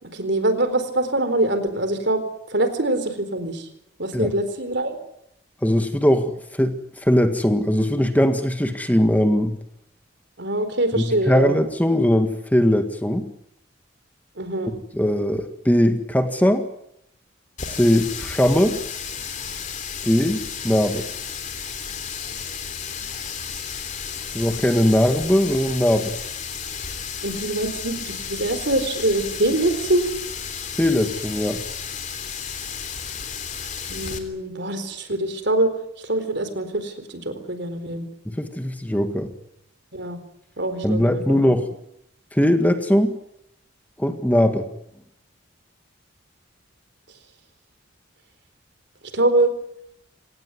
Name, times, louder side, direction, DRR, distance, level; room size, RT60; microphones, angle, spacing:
voice 1, 0.0-2.2 2.5-3.7 4.0-5.0 10.4-11.5 14.4-14.7 27.2-30.1 33.9-38.1 39.9-40.2 40.6-41.4 49.1-49.5, right 1 dB, 60° right, 10 dB, 4.3 m, -24 dB
voice 2, 5.6-9.5 11.0-13.3 14.9-16.7 17.7-18.8 20.0-21.1 24.3-26.1 30.8-31.6 38.3-39.3 40.8-41.7 42.3-43.1 44.0-44.7, equal, 10° left, 7 dB, 1.8 m, -20 dB
Water tap faucet, 17.6-34.2, left 7 dB, 40° left, 3.4 m, -33 dB
26.5 x 18.5 x 9.7 m, 0.79 s
head